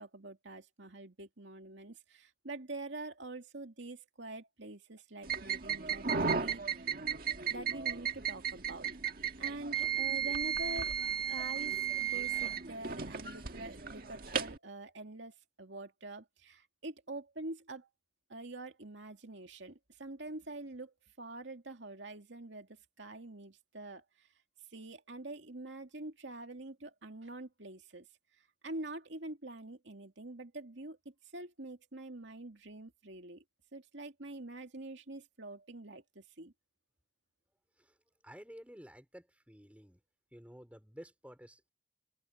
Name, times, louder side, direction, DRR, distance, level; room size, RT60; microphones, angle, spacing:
voice 1, 0.0-6.9 7.5-8.9 9.4-10.9 11.2-17.9 18.3-24.3 24.7-28.1 28.6-33.4 33.7-36.5, right 2 dB, 70° right, 2.4 m, -46 dB
sound 1, 5.2-14.6, right 8 dB, 50° right, 1.7 m, -35 dB
voice 2, 38.2-40.0 40.3-41.7, equal, 5° right, 4.3 m, -52 dB
open air
head